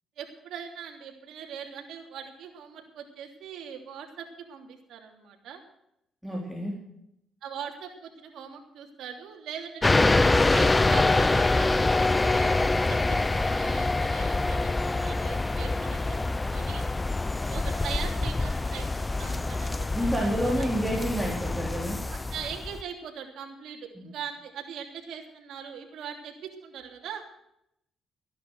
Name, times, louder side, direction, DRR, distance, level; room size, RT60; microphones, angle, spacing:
voice 1, 0.2-5.6 7.4-13.0 13.3-16.2 16.5-16.9 17.4-19.9 20.6-20.7 22.1-27.3, right 7 dB, 75° right, 2 dB, 3.2 m, -41 dB
voice 2, 6.2-6.8 15.9-16.0 19.9-22.0 23.9-24.1, equal, 5° right, -3 dB, 3.9 m, -29 dB
sound 1, 9.8-22.8, left 2 dB, 20° left, 0.5 m, -25 dB
14.0 x 11.0 x 6.4 m, 0.78 s
cardioid pair, 90°, 0 cm